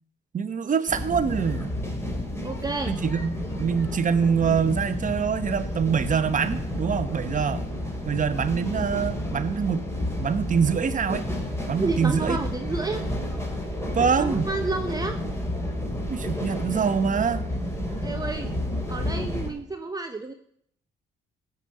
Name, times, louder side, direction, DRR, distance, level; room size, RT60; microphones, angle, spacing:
voice 1, 0.3-1.8 2.9-7.6 8.1-9.9 10.2-11.2 11.7-12.4 13.9-14.5 16.1-17.4, right 6 dB, 40° right, 12 dB, 1.0 m, -25 dB
sound 1, 0.9-19.5, left 1 dB, 10° left, 3.1 m, -31 dB
voice 2, 2.4-2.9 11.8-13.0 14.2-15.2 18.0-18.5 18.9-20.3, right 3 dB, 20° right, 5 dB, 1.0 m, -30 dB
15.5 x 5.4 x 7.7 m, 0.67 s
cardioid pair, 90°, 20 cm